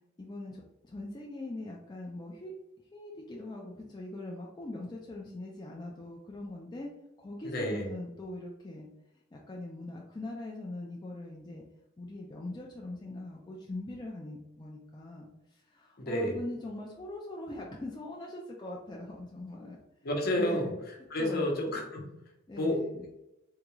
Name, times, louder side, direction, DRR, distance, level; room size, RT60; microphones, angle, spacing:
voice 1, 0.2-2.5 2.9-6.9 7.2-8.9 9.3-11.6 12.0-19.8 20.4-20.8 21.2-21.7 22.5-23.1, left 2 dB, 20° left, -2 dB, 0.4 m, -42 dB
voice 2, 7.4-7.9 16.0-16.4 20.0-20.7 21.1-22.1 22.6-22.8, left 1 dB, 55° left, 0 dB, 0.8 m, -30 dB
3.6 x 2.3 x 2.9 m, 0.91 s
head